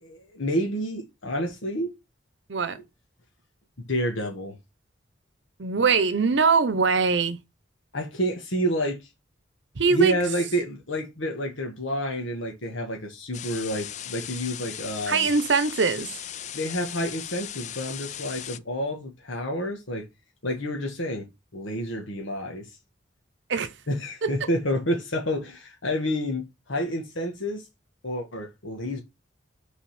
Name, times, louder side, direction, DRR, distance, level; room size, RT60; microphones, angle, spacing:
voice 1, 0.0-1.9 3.8-4.5 7.9-9.0 9.9-15.3 16.5-20.1 20.4-21.3 21.5-22.7 23.9-27.7 28.0-29.0, equal, 90° left, 1.5 m, -29 dB
voice 2, 5.6-7.4 9.8-10.2 15.1-16.1 23.5-23.7 24.2-24.3, right 4 dB, 65° right, 0.8 m, -22 dB
sound 1, 13.3-18.6, left 11 dB, 40° left, 0.4 m, -38 dB
6.0 x 4.0 x 5.7 m
head